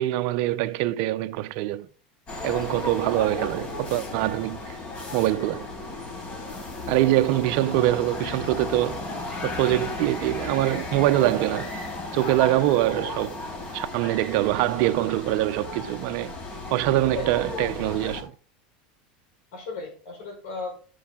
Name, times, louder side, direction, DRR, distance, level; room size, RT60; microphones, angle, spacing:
voice 1, 0.0-1.9 2.4-4.8 5.1-5.7 6.9-9.0 9.4-11.7 12.1-13.4 13.7-16.3 16.7-18.3, right 15 dB, 60° right, 0.7 m, -24 dB
sound 1, 2.3-18.2, left 2 dB, 30° left, 4.7 m, -35 dB
voice 2, 17.1-17.7 19.5-20.9, left 3 dB, 65° left, 5.1 m, -36 dB
13.0 x 6.6 x 3.8 m
supercardioid pair, 130°, 4 cm